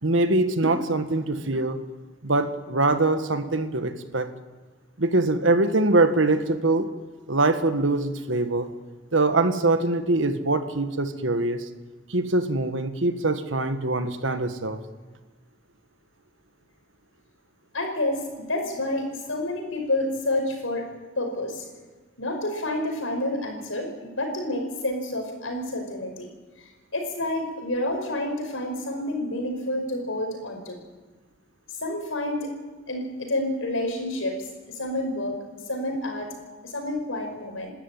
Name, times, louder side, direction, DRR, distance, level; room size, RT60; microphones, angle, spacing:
voice 1, 0.0-1.8 2.2-4.3 5.0-6.9 7.3-8.7 9.1-11.7 12.1-14.8, right 2 dB, 75° right, 9 dB, 1.6 m, -23 dB
voice 2, 17.7-20.9 21.2-21.7 22.2-26.3 26.6-30.8 31.8-32.5 32.9-34.4 34.7-35.4 35.7-36.3 36.6-37.7, left 1 dB, 90° left, 3 dB, 5.2 m, -29 dB
28.5 x 12.5 x 9.1 m, 1.3 s
head